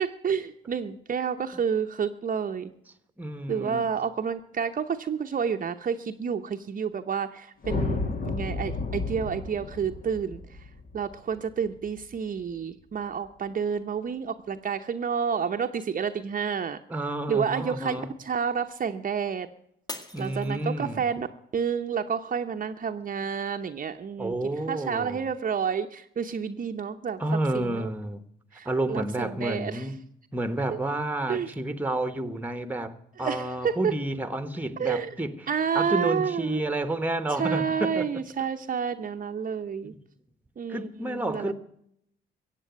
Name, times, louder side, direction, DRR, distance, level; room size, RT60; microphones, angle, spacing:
voice 1, 0.0-2.7 3.5-10.4 10.9-16.8 17.3-19.5 20.2-21.3 21.5-24.3 24.7-27.2 27.5-27.9 28.5-29.8 31.3-31.5 33.2-33.9 34.8-35.1 35.5-36.6 37.4-39.9 40.6-41.5, right 7 dB, 45° right, 0.9 m, -29 dB
voice 2, 3.2-3.9 16.9-18.1 20.1-21.0 24.2-25.3 27.2-28.2 28.6-30.0 30.3-35.3 35.7-38.1 40.7-41.5, right 1 dB, 10° right, 1.4 m, -30 dB
sound 1, 7.6-12.0, left 3 dB, 45° left, 2.1 m, -32 dB
Shatter, 19.9-21.2 21.7-22.2 22.7-22.8, left 2 dB, 20° left, 2.0 m, -41 dB
15.5 x 8.4 x 9.3 m
cardioid pair, 90°, 20 cm